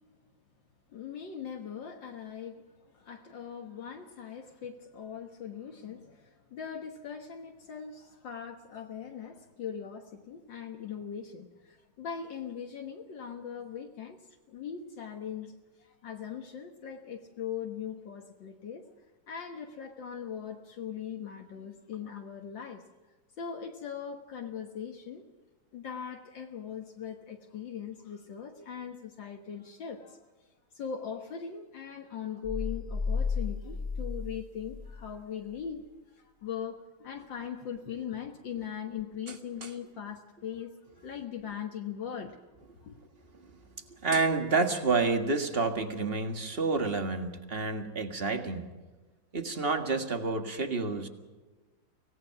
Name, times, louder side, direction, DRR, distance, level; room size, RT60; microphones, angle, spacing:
voice 1, 0.9-14.2 14.5-18.8 19.3-22.8 23.4-25.2 25.7-30.2 30.7-42.5 42.8-43.0, left 8 dB, 75° left, 2 dB, 2.1 m, -40 dB
sound 1, 32.4-35.2, left 5 dB, 15° left, 0.9 m, -33 dB
voice 2, 43.9-48.7 49.3-51.1, right 3 dB, 30° right, 6 dB, 1.8 m, -29 dB
24.5 x 18.0 x 5.9 m, 1.2 s
omnidirectional pair, 2.1 m